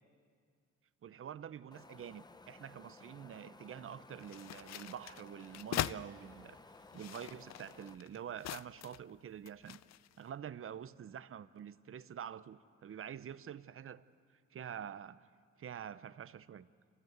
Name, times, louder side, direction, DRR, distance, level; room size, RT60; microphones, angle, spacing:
voice 1, 1.0-6.6 6.9-9.8 10.2-14.0 14.5-15.3 15.6-16.7, right 9 dB, 45° right, 15 dB, 0.8 m, -47 dB
Wind, 1.7-7.9, left 3 dB, 15° left, 0.7 m, -57 dB
sound 1, 4.2-6.0 6.8-9.1 9.5-10.1, left 13 dB, 60° left, 0.5 m, -42 dB
27.5 x 19.0 x 8.1 m, 2.1 s
cardioid pair, 90°, 30 cm